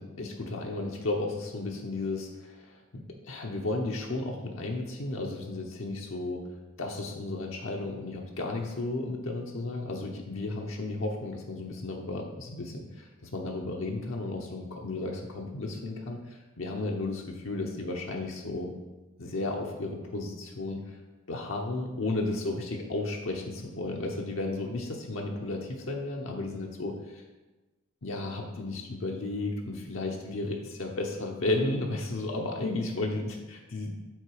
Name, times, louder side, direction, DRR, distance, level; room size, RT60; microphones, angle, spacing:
voice 1, 0.0-18.7 19.2-21.0 21.3-27.2 28.0-33.9, left 2 dB, 70° left, 0 dB, 0.8 m, -34 dB
7.8 x 3.9 x 4.7 m, 1.1 s
head